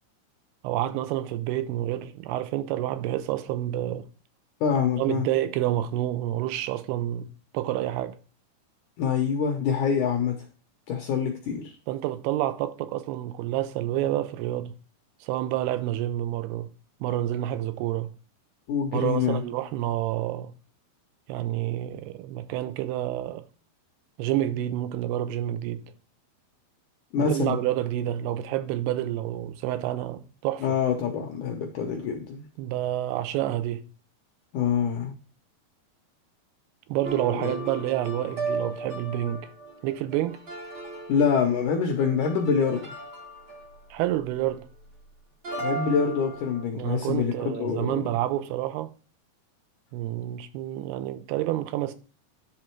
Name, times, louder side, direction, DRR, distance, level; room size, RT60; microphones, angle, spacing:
voice 1, 0.6-4.1 5.0-8.2 11.9-14.7 15.2-16.7 17.0-18.1 18.9-20.5 21.3-23.5 24.2-25.9 27.2-30.7 32.6-33.9 36.9-39.5 39.8-40.4 43.9-44.6 46.7-48.9 49.9-51.9, right 13 dB, 85° right, 2.6 m, -28 dB
voice 2, 4.6-5.2 9.0-10.4 10.9-11.8 18.7-19.4 27.1-27.6 30.6-32.4 34.5-35.1 37.4-37.5 41.1-42.9 45.6-48.0, left 6 dB, 75° left, 1.8 m, -25 dB
sound 1, 37.0-44.8 45.4-46.6, right 2 dB, 60° right, 1.1 m, -36 dB
10.0 x 3.6 x 4.4 m
omnidirectional pair, 4.5 m